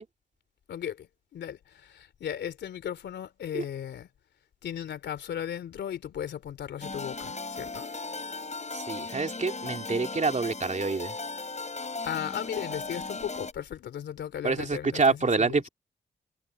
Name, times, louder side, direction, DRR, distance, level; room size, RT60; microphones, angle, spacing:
voice 1, 0.7-4.1 4.6-7.9 12.0-15.7, left 9 dB, 85° left, 3.2 m, -36 dB
sound 1, 6.8-13.5, left 3 dB, 40° left, 6.9 m, -37 dB
voice 2, 8.7-11.1 14.4-15.7, right 4 dB, 45° right, 3.0 m, -27 dB
supercardioid pair, 40°, 18 cm